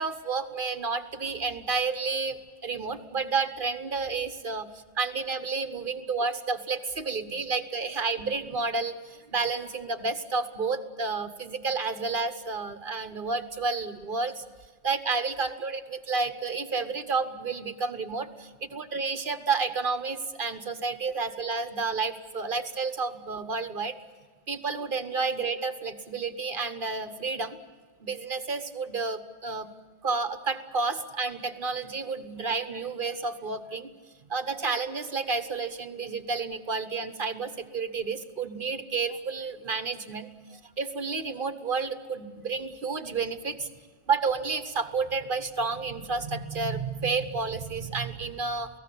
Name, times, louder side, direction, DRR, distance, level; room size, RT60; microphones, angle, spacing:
voice 1, 0.0-14.4 14.8-23.9 24.5-27.6 28.0-29.7 30.0-33.9 34.3-43.7 44.1-48.7, right 4 dB, 45° right, 9 dB, 1.4 m, -30 dB
28.5 x 18.0 x 8.4 m, 1.5 s
omnidirectional pair, 1.2 m